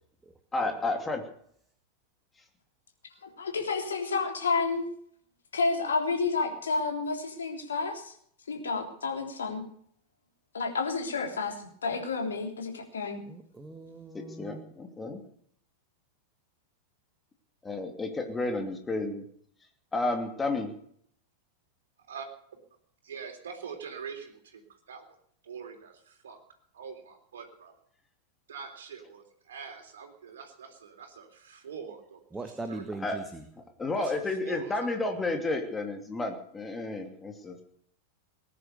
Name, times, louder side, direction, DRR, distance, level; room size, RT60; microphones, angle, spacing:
voice 1, 0.5-1.2 14.4-15.2 17.6-19.2 19.9-20.7 33.0-33.2 33.8-37.6, left 2 dB, 15° left, 4 dB, 2.9 m, -31 dB
voice 2, 3.2-4.8 5.5-8.1 8.5-9.6 10.5-11.5 11.8-13.2, left 4 dB, 70° left, 4 dB, 3.3 m, -30 dB
voice 3, 13.3-14.7 32.3-33.4 34.0-34.1, right 2 dB, 10° right, 7 dB, 1.6 m, -40 dB
voice 4, 23.0-24.6 24.9-25.0 25.4-26.4 26.7-27.4 28.5-32.2 32.7-32.8 34.0-34.1 34.4-35.0, right 6 dB, 65° right, 5 dB, 3.6 m, -43 dB
19.0 x 10.5 x 6.8 m, 0.64 s
figure-of-eight pair, 90°, 0 cm